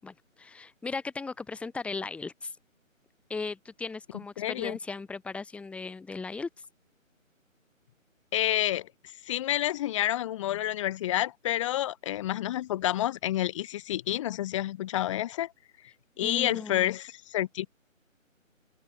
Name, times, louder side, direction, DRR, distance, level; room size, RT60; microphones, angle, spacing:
voice 1, 0.0-2.5 3.3-6.5 16.2-16.9, left 4 dB, 5° left, 6.0 m, -37 dB
voice 2, 4.4-4.8 8.3-8.9 9.3-15.5 16.2-17.7, left 13 dB, 20° left, 6.0 m, -29 dB
figure-of-eight pair, 160°, 41 cm